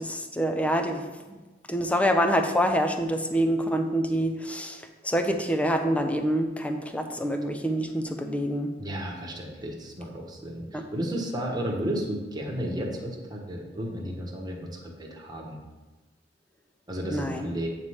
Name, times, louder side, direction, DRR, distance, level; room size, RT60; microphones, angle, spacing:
voice 1, 0.0-1.4 1.7-8.7 10.7-10.8 17.1-17.5, equal, 5° left, 5 dB, 0.5 m, -26 dB
voice 2, 8.8-15.6 16.9-17.7, equal, 20° right, -1 dB, 1.1 m, -33 dB
8.3 x 3.3 x 5.6 m, 1.2 s
head